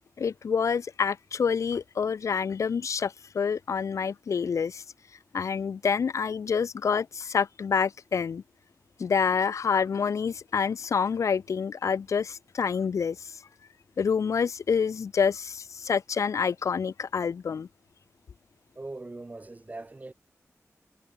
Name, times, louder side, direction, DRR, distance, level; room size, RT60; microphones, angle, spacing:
voice 1, 0.2-4.8 5.3-8.4 9.0-13.4 14.0-17.7, left 6 dB, 75° left, 0.3 m, -27 dB
voice 2, 18.7-20.1, right 2 dB, 30° right, 1.2 m, -40 dB
wide cardioid pair, 105°, 5 cm